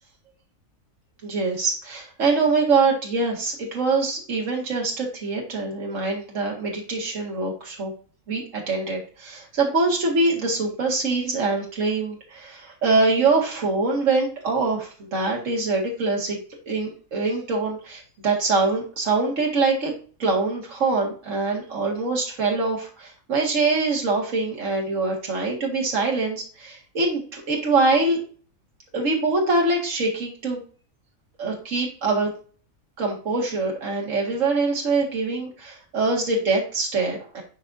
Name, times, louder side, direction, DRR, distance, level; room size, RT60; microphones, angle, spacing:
voice 1, 1.2-7.9 8.3-16.4 16.7-19.9 20.2-28.2 28.9-30.6 31.4-32.3 33.0-37.4, right 3 dB, 60° right, -1 dB, 2.2 m, -24 dB
11.5 x 4.2 x 2.7 m, 0.40 s
omnidirectional pair, 1.5 m